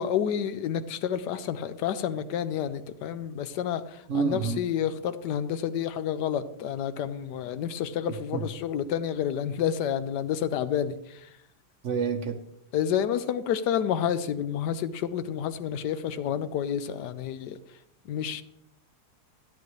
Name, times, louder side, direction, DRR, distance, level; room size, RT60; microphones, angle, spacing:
voice 1, 0.0-11.3 12.7-17.6 18.1-18.4, left 9 dB, 85° left, 12 dB, 1.3 m, -29 dB
voice 2, 4.1-4.6 8.3-8.4 11.8-12.4, right 6 dB, 60° right, 6 dB, 0.9 m, -27 dB
12.0 x 10.5 x 3.2 m, 0.77 s
omnidirectional pair, 1.8 m